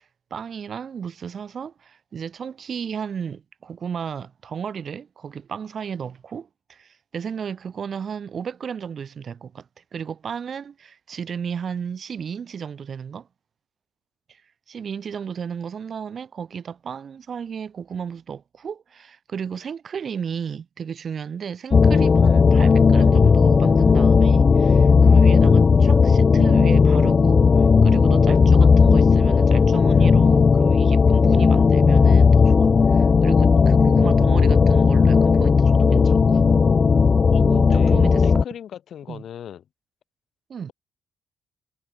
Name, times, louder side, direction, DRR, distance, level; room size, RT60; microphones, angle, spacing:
voice 1, 0.3-13.3 14.3-14.4 14.7-36.4 37.4-38.3 39.1-39.2 40.5-40.7, right 7 dB, 50° right, 1.7 m, -33 dB
sound 1, 21.7-38.4, left 5 dB, 40° left, 0.6 m, -15 dB
voice 2, 37.3-39.6, left 9 dB, 65° left, 2.3 m, -38 dB
cardioid pair, 90°, 0 cm